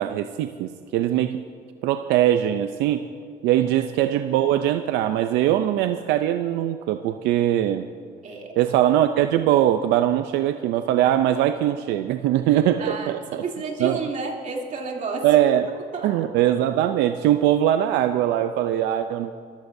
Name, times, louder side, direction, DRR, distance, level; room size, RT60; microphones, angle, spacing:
voice 1, 0.0-1.4 1.8-3.1 3.4-7.8 8.6-13.4 13.8-14.0 15.2-15.6 16.0-19.3, right 12 dB, 85° right, 9 dB, 0.5 m, -21 dB
voice 2, 8.2-8.5 12.5-15.6 15.9-16.1, right 4 dB, 45° right, -1 dB, 3.0 m, -31 dB
22.5 x 14.5 x 2.7 m, 2.3 s
cardioid pair, 110°, 17 cm